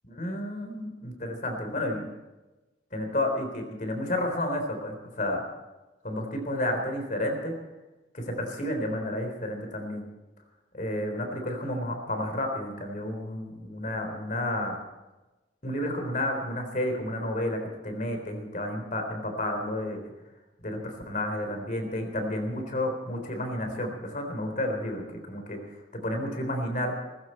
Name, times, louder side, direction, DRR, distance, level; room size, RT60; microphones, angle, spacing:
voice 1, 0.2-2.1 2.9-5.4 6.0-7.5 8.1-10.0 10.7-14.8 15.6-20.0 20.6-25.6 25.9-26.9, left 1 dB, 45° left, 4 dB, 3.7 m, -31 dB
18.5 x 16.0 x 4.4 m, 1.1 s
head